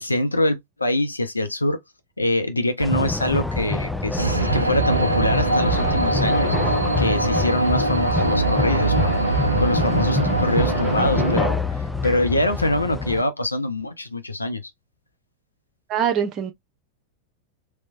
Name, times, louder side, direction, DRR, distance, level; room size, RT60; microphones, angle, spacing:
voice 1, 0.0-1.8 2.2-6.6 7.0-14.6, left 1 dB, 80° left, 0.7 m, -24 dB
sound 1, 2.8-13.2, left 3 dB, 5° left, 0.5 m, -26 dB
sound 2, 4.2-11.4, right 2 dB, 85° right, 0.4 m, -22 dB
voice 2, 15.9-16.5, right 8 dB, 30° right, 1.0 m, -23 dB
3.4 x 3.0 x 2.5 m
figure-of-eight pair, 90°, 0 cm